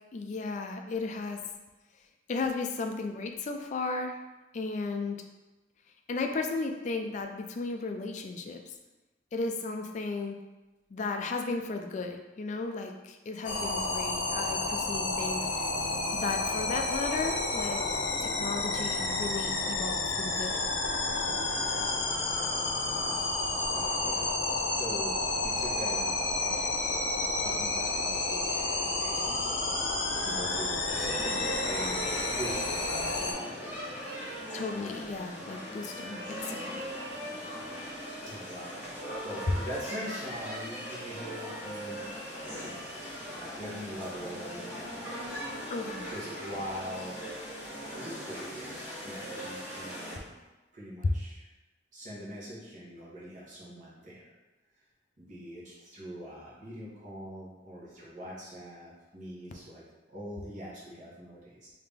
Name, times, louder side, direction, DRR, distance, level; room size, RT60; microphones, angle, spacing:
voice 1, 0.1-1.4 2.3-4.2 4.5-5.2 6.1-8.7 9.3-10.4 10.9-15.7 16.1-20.6 34.5-36.9 45.7-46.1 51.0-51.1, left 3 dB, 40° left, 4 dB, 0.3 m, -35 dB
sound 1, 13.4-33.3, left 2 dB, 75° left, 0.6 m, -30 dB
voice 2, 23.7-27.0 27.4-29.5 30.1-32.9 33.2-34.0 38.2-42.9 43.4-45.2 46.1-47.2 48.0-50.3 50.7-51.4 51.9-54.3 55.2-61.7, equal, 40° right, -7 dB, 1.2 m, -43 dB
sound 2, 30.9-50.1, equal, 10° right, 1.2 m, -39 dB
3.4 x 2.8 x 3.5 m, 1.1 s
head